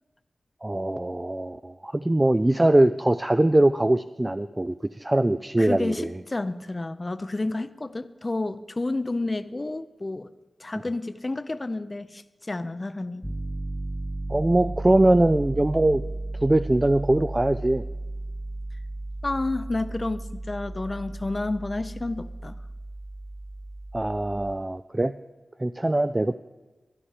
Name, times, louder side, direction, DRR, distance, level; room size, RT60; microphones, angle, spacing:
voice 1, 0.6-6.1 14.3-16.0 16.4-17.8 23.9-25.1 25.6-26.4, right 1 dB, 20° right, 10 dB, 0.3 m, -22 dB
voice 2, 5.6-10.3 10.6-13.3 19.2-22.6, left 2 dB, 35° left, 13 dB, 0.5 m, -30 dB
Piano, 13.2-24.5, right 2 dB, ahead, 0.8 m, -35 dB
13.0 x 11.0 x 4.9 m, 1.2 s
wide cardioid pair, 70°, 0 cm